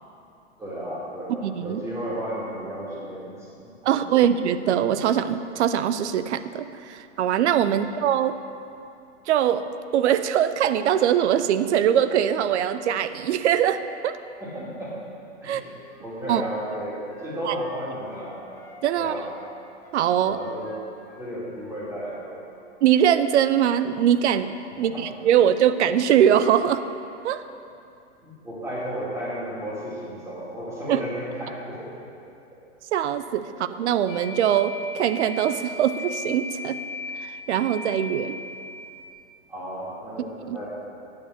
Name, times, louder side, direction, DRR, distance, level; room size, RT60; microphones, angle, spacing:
voice 1, 0.6-4.2 14.4-15.0 15.4-15.6 16.0-18.5 18.9-19.3 20.2-20.7 21.1-22.4 24.8-25.1 28.2-32.0 39.5-40.7, equal, 10° right, -8 dB, 2.4 m, -34 dB
voice 2, 1.4-1.8 3.8-8.4 9.3-9.7 9.9-14.2 15.4-15.6 16.3-16.4 17.4-17.5 18.8-19.1 19.9-20.4 22.8-26.8 27.2-27.4 30.9-31.0 32.9-36.8 37.2-38.4 40.5-40.6, right 10 dB, 70° right, 12 dB, 0.6 m, -22 dB
Wind instrument woodwind instrument, 15.4-18.8 19.1-22.2 22.5-22.7, equal, 10° left, 2.3 m, -48 dB
sound 1, 34.1-39.1, left 2 dB, 25° left, 0.9 m, -37 dB
9.6 x 5.0 x 7.9 m, 2.6 s
hypercardioid pair, 155°, 35 cm